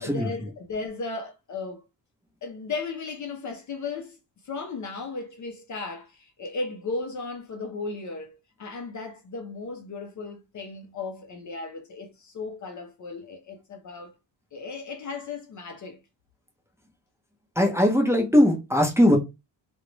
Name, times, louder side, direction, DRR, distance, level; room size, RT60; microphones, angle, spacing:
voice 1, 0.0-1.8 2.4-4.2 4.4-14.1 14.5-16.0, left 3 dB, 45° left, 0.5 m, -35 dB
voice 2, 17.6-19.2, left 1 dB, 5° right, 0.6 m, -20 dB
2.4 x 2.1 x 3.0 m
cardioid pair, 115°, 45 cm